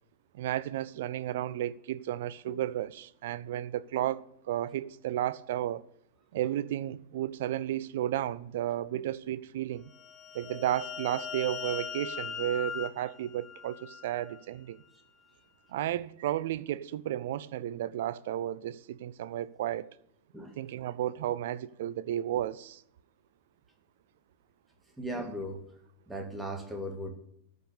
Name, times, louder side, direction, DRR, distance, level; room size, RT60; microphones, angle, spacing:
voice 1, 0.3-5.8 6.3-9.9 10.3-14.8 15.7-19.9 20.6-22.8, right 12 dB, 55° right, 0.5 m, -33 dB
sound 1, 9.9-14.4, left 8 dB, 30° left, 0.6 m, -40 dB
voice 2, 25.0-25.6 26.1-27.1, equal, 5° right, 2.1 m, -37 dB
13.5 x 5.4 x 8.3 m
figure-of-eight pair, 90°, 0 cm